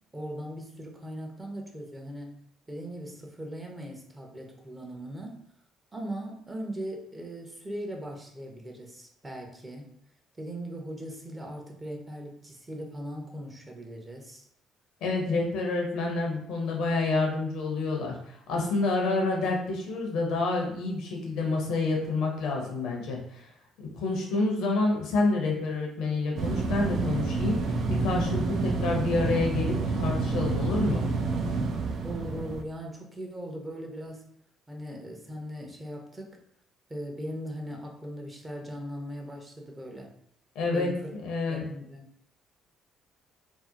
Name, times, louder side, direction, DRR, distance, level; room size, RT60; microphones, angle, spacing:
voice 1, 0.1-2.4 2.7-5.4 5.9-9.9 10.4-14.5 32.0-34.3 34.7-36.4 36.9-40.1 40.6-41.1 41.5-42.1, equal, 20° right, 1 dB, 0.7 m, -39 dB
voice 2, 15.0-23.5 23.8-31.0 40.5-41.6, left 3 dB, 65° left, 0 dB, 0.6 m, -28 dB
sound 1, 26.4-32.6, right 3 dB, 55° right, 0.3 m, -29 dB
2.7 x 2.1 x 2.5 m, 0.70 s
hypercardioid pair, 50°, 0 cm